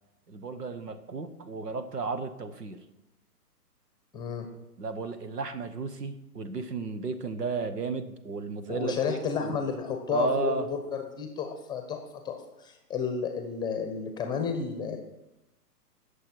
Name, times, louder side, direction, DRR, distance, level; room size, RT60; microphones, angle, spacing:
voice 1, 0.3-2.8 4.8-9.6 10.1-10.7, right 4 dB, 75° right, 11 dB, 1.4 m, -33 dB
voice 2, 4.1-4.5 8.7-15.0, left 6 dB, 10° left, 5 dB, 0.9 m, -32 dB
18.0 x 6.8 x 4.7 m, 0.94 s
figure-of-eight pair, 125°, 48 cm